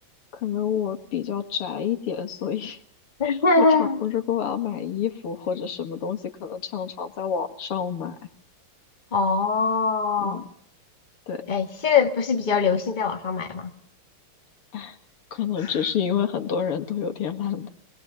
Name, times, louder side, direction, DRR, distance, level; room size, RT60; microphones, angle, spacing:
voice 1, 0.3-2.8 3.2-8.2 10.2-10.5 11.3-11.4 14.7-15.0 15.3-17.7, left 8 dB, 90° left, 2.7 m, -28 dB
voice 2, 3.2-4.0 9.1-10.4 11.5-13.7 15.6-15.7, left 4 dB, 20° left, 1.8 m, -22 dB
26.0 x 21.5 x 7.0 m
omnidirectional pair, 2.4 m